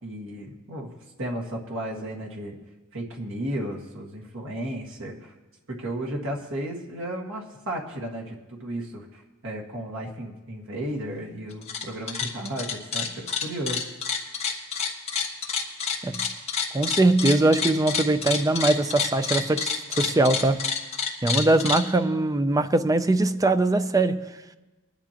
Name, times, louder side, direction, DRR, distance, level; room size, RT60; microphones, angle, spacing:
voice 1, 0.0-0.9 1.2-2.6 2.9-5.3 5.7-13.8, right 1 dB, 65° right, 1.8 m, -34 dB
sound 1, 11.5-11.8 12.1-21.8, left 6 dB, 30° left, 1.6 m, -28 dB
voice 2, 16.7-20.6 21.2-24.3, right 2 dB, 15° right, 0.5 m, -22 dB
21.5 x 10.5 x 2.9 m
head